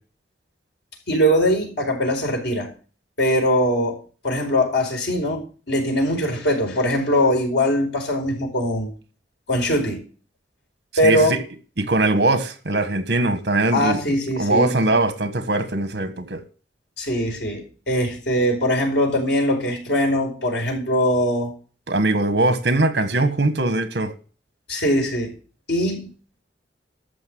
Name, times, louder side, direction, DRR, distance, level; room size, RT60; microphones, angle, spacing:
voice 1, 1.1-2.7 3.2-4.0 4.2-8.9 9.5-10.0 11.0-11.3 13.7-14.7 17.0-21.5 24.7-25.3 25.7-26.1, equal, 80° left, 4.7 m, -21 dB
voice 2, 11.0-11.4 11.8-14.0 14.4-16.4 21.9-24.1, right 2 dB, 65° right, 1.6 m, -21 dB
13.5 x 5.9 x 7.8 m
head